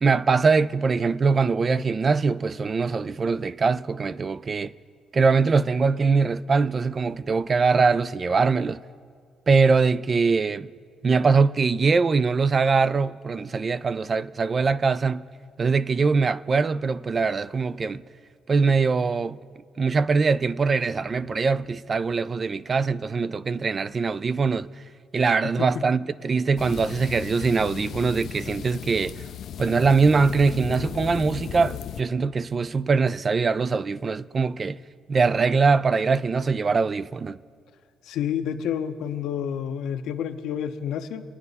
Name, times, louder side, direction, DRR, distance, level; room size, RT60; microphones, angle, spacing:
voice 1, 0.0-4.7 5.1-8.8 9.5-10.7 11.0-15.2 15.6-18.0 18.5-19.4 19.8-24.7 25.1-29.2 29.6-34.8 35.1-37.4, right 4 dB, 35° right, 0.3 m, -22 dB
voice 2, 25.4-25.8 38.1-41.2, left 8 dB, 80° left, 0.8 m, -29 dB
sound 1, 26.6-32.0, left 9 dB, 65° left, 0.4 m, -36 dB
25.0 x 9.7 x 4.1 m
cardioid pair, 105°, 0 cm